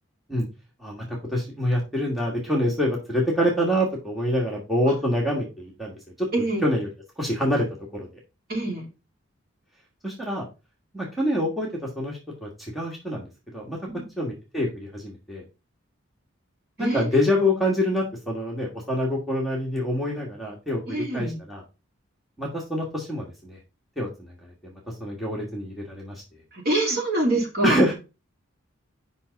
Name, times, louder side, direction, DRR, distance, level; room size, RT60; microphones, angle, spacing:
voice 1, 0.8-6.9 7.2-7.7 7.9-8.1 10.0-10.4 10.9-11.7 12.0-13.2 13.5-13.8 14.2-15.4 16.8-21.6 22.4-23.6 24.0-24.3 24.6-26.2 27.6-27.9, equal, ahead, -3 dB, 1.5 m, -26 dB
voice 2, 8.5-8.8 13.9-14.0 16.8-17.0 20.9-21.4 26.6-27.8, right 1 dB, 45° right, -1 dB, 2.9 m, -25 dB
7.5 x 5.6 x 4.0 m, 0.29 s
head